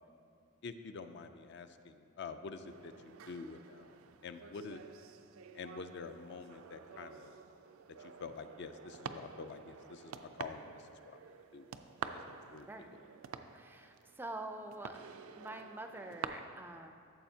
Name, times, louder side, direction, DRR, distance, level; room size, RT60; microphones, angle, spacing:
voice 1, 0.6-4.0 4.2-4.8 5.5-7.3 8.0-11.7 12.3-12.7, left 4 dB, 55° left, 9 dB, 0.4 m, -47 dB
sound 1, 2.6-16.2, right 6 dB, 85° right, 0.4 m, -49 dB
voice 2, 13.5-15.0 15.3-16.9, right 2 dB, 10° right, 6 dB, 0.3 m, -46 dB
13.0 x 7.1 x 2.8 m, 2.3 s
head